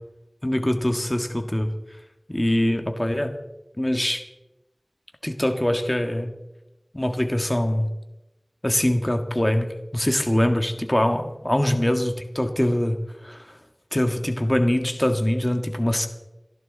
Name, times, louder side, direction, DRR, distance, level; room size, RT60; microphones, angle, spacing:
voice 1, 0.4-1.7 2.3-3.3 3.8-4.2 5.2-6.3 6.9-7.9 8.6-13.0 13.2-13.5 13.9-16.1, left 1 dB, 25° left, 6 dB, 1.6 m, -23 dB
28.5 x 11.0 x 4.0 m, 0.98 s
wide cardioid pair, 45°, 0 cm